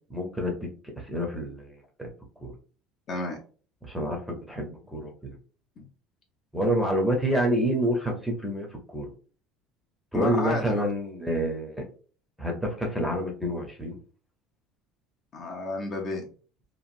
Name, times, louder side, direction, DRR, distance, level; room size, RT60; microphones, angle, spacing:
voice 1, 0.1-0.7 1.0-1.7 2.0-2.1 2.4-2.5 3.8-5.3 6.5-9.1 10.1-11.8 12.4-14.0, equal, ahead, 1 dB, 0.7 m, -28 dB
voice 2, 3.1-3.4 5.8-5.9 10.1-10.9 15.3-16.2, left 2 dB, 35° left, 1 dB, 0.6 m, -31 dB
2.9 x 2.4 x 2.5 m, 0.39 s
cardioid pair, 160°, 0 cm